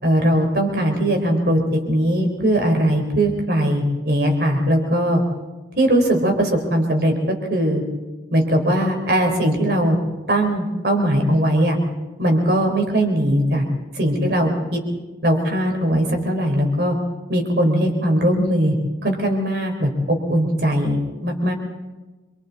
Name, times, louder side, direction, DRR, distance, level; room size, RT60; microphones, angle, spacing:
voice 1, 0.0-5.2 5.8-7.1 7.5-7.8 8.3-10.0 10.3-11.8 12.2-13.7 13.9-14.8 15.2-17.0 17.3-18.8 19.0-21.5, right 1 dB, 55° right, 3 dB, 4.2 m, -19 dB
27.0 x 24.0 x 4.2 m, 1.2 s
head